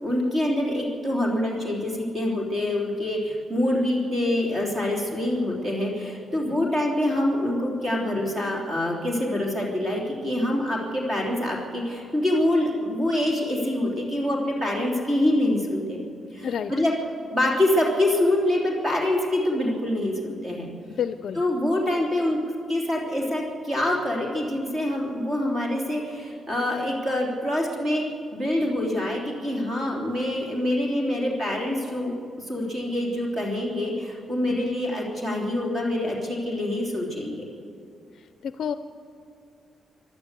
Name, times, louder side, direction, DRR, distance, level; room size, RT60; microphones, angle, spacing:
voice 1, 0.0-16.0 16.3-16.9 17.3-20.7 21.3-22.4 22.7-37.4, left 1 dB, 25° right, -2 dB, 3.2 m, -25 dB
voice 2, 21.0-21.4 34.5-34.8 38.4-38.7, left 8 dB, 55° left, 11 dB, 0.5 m, -30 dB
28.0 x 12.0 x 8.2 m, 2.5 s
wide cardioid pair, 175°, 0 cm